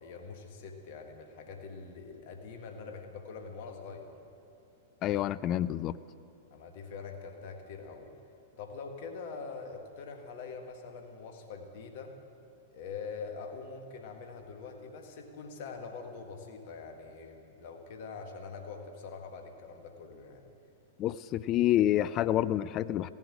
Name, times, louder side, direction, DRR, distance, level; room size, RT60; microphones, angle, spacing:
voice 1, 0.0-4.1 6.5-8.1 8.6-12.2 12.7-20.4, left 5 dB, 50° left, 5 dB, 1.5 m, -44 dB
voice 2, 5.0-6.0 21.0-23.2, left 12 dB, 35° left, 17 dB, 0.3 m, -28 dB
16.5 x 7.4 x 9.8 m, 2.7 s
figure-of-eight pair, 100°, 0 cm